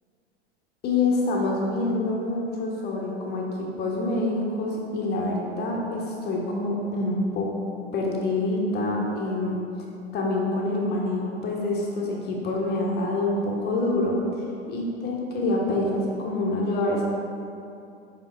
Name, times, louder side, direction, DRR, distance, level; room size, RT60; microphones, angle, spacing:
voice 1, 0.8-7.5 7.9-9.6 10.1-14.2 14.7-17.0, left 2 dB, 30° left, -1 dB, 1.3 m, -26 dB
5.6 x 5.4 x 4.6 m, 2.6 s
figure-of-eight pair, 85°, 33 cm